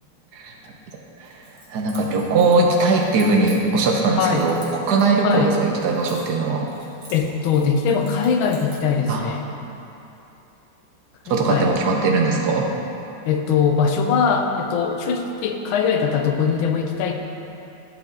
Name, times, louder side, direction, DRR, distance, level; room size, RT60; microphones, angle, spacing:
voice 1, 0.3-0.7 1.2-1.3 1.7-6.7 9.1-9.2 11.3-12.7, right 3 dB, 65° right, 0 dB, 1.2 m, -20 dB
Keys jangling, 1.2-4.0 4.4-6.4 6.7-8.9, right 2 dB, 35° right, 1.7 m, -45 dB
voice 2, 4.2-4.5 5.2-5.6 7.1-9.5 11.3-11.7 13.2-17.1, left 6 dB, 85° left, 4 dB, 1.5 m, -21 dB
11.5 x 5.0 x 3.8 m, 2.9 s
omnidirectional pair, 2.2 m